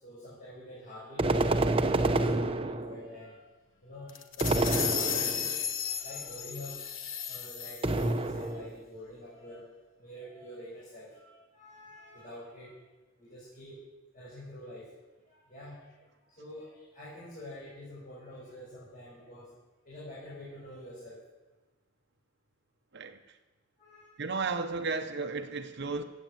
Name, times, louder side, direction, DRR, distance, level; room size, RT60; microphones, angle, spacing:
voice 1, 0.0-3.4 3.8-6.8 7.3-9.7 10.0-12.9 13.2-13.8 14.1-14.9 15.3-16.0 16.2-19.5 19.8-21.2 23.8-24.2, left 1 dB, 45° left, 5.6 m, -46 dB
sound 1, 1.2-3.1 4.4-5.6 7.8-8.8, right 2 dB, 30° right, 0.8 m, -28 dB
sound 2, 4.1-8.1, left 8 dB, 75° left, 1.2 m, -34 dB
voice 2, 22.9-23.4 24.2-26.0, right 4 dB, 60° right, 0.9 m, -34 dB
16.0 x 8.7 x 7.8 m
head